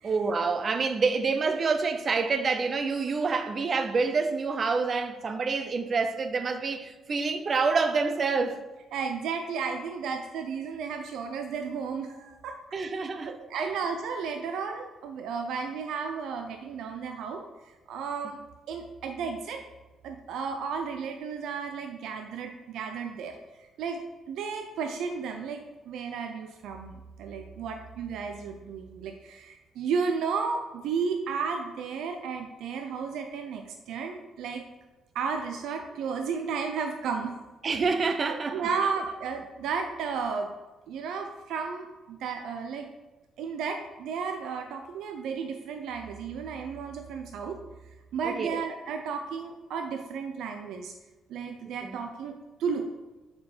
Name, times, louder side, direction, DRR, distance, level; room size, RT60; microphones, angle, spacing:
voice 1, 0.0-8.6 12.7-13.4 37.6-38.7 48.2-48.6 51.8-52.0, right 4 dB, 45° right, 0.7 m, -27 dB
voice 2, 8.9-12.6 13.2-18.4 18.7-19.6 20.0-23.4 23.8-24.0 24.3-34.6 35.1-37.4 38.2-40.5 40.9-42.9 43.4-47.6 48.1-50.9 51.3-52.9, right 5 dB, 80° right, 0.5 m, -33 dB
6.8 x 4.6 x 5.0 m
cardioid pair, 90°, 0 cm